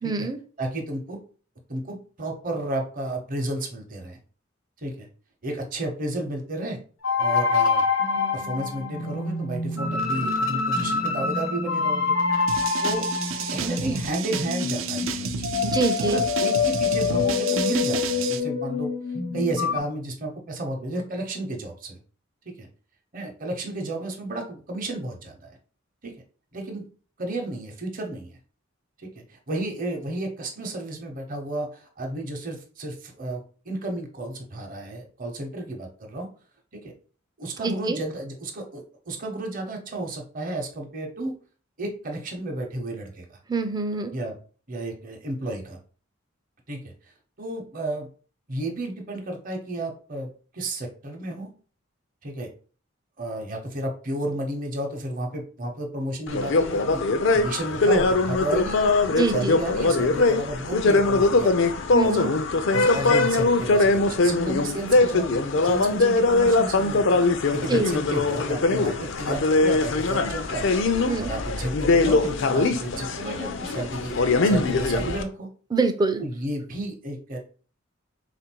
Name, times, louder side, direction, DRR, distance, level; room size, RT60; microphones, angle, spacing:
voice 1, 0.0-0.4 15.6-16.2 37.6-38.0 43.5-44.1 59.1-59.6 61.9-62.3 67.7-67.9 71.0-71.3 75.7-76.2, right 3 dB, 20° right, 8 dB, 0.4 m, -25 dB
voice 2, 0.6-1.2 1.7-4.2 4.8-5.1 5.4-6.8 7.2-7.9 8.3-12.1 12.8-13.0 13.5-15.4 16.0-18.9 19.3-22.0 22.6-22.7 23.1-25.4 26.0-26.1 26.5-26.8 27.2-28.4 29.0-33.4 33.6-36.3 36.8-36.9 37.4-41.3 41.8-43.4 44.1-44.3 44.7-45.8 46.7-46.9 47.4-48.1 48.5-51.5 52.2-52.5 53.2-57.0 57.3-58.9 59.3-62.3 62.7-67.2 67.5-70.7 71.2-75.5 76.2-77.4, right 2 dB, 45° right, 2 dB, 0.8 m, -32 dB
sound 1, 7.0-19.8, left 5 dB, 85° left, 0.9 m, -26 dB
sound 2, 12.5-18.4, right 6 dB, 75° right, 0.4 m, -31 dB
sound 3, 56.3-75.2, left 3 dB, 65° left, 0.5 m, -22 dB
3.6 x 2.5 x 4.5 m, 0.40 s
head